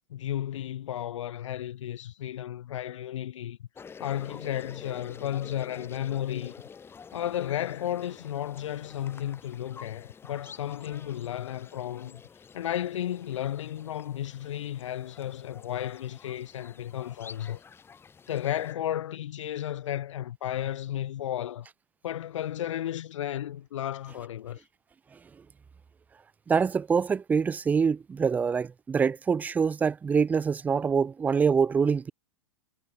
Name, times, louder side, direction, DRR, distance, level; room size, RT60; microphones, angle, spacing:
voice 1, 0.1-3.6 4.0-6.5 7.1-12.2 12.5-17.6 18.3-21.7 22.0-24.6, left 11 dB, 85° left, 0.5 m, -33 dB
sound 1, 3.8-18.7, left 6 dB, 15° left, 4.4 m, -49 dB
voice 2, 26.5-32.1, right 6 dB, 10° right, 0.5 m, -25 dB
hypercardioid pair, 135°, 15 cm